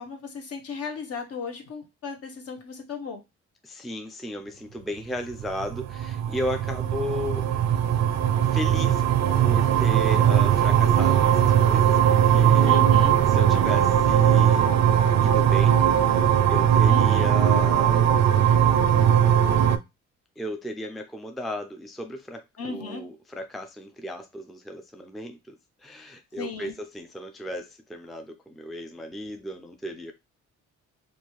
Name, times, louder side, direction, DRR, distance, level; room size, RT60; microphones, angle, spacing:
voice 1, 0.0-3.2 12.6-13.1 16.9-17.3 22.6-23.1 26.4-26.8, left 5 dB, 50° left, 0.9 m, -35 dB
voice 2, 3.6-7.7 8.4-9.0 9.3-12.9 13.3-14.7 15.2-15.8 16.5-18.2 20.4-22.4 22.7-25.5 25.8-30.1, equal, ahead, 0.4 m, -35 dB
sound 1, 5.4-19.8, right 9 dB, 60° right, 0.4 m, -20 dB
2.7 x 2.3 x 3.0 m
cardioid pair, 90°, 30 cm